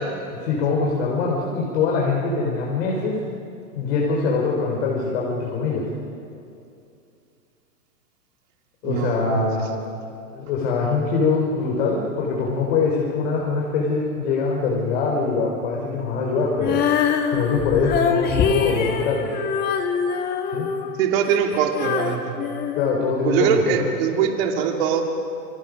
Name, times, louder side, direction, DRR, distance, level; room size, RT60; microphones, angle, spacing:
voice 1, 0.3-3.2 3.7-5.9 8.8-9.8 10.3-17.0 17.3-19.4 20.5-20.7 22.8-23.8, left 4 dB, 45° left, -2 dB, 4.6 m, -23 dB
voice 2, 8.8-9.4 21.0-22.3 23.2-25.0, right 8 dB, 40° right, 2 dB, 2.8 m, -22 dB
Female singing, 16.6-23.6, left 7 dB, 20° left, 1.7 m, -24 dB
29.0 x 24.0 x 5.4 m, 2.6 s
hypercardioid pair, 150°, 45 cm